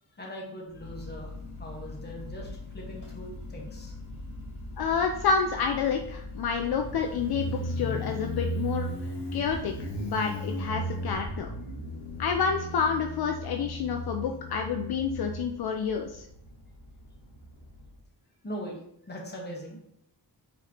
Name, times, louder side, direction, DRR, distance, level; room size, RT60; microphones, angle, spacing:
voice 1, 0.2-3.9 18.4-19.8, equal, 25° left, -1 dB, 1.2 m, -41 dB
Motorcycle, 0.7-17.9, equal, 85° left, 1.4 m, -37 dB
voice 2, 4.8-8.9 9.3-9.7 10.0-11.5 12.2-16.2, left 6 dB, 65° left, 3 dB, 0.5 m, -29 dB
4.9 x 3.1 x 2.9 m, 0.74 s
wide cardioid pair, 100°, 40 cm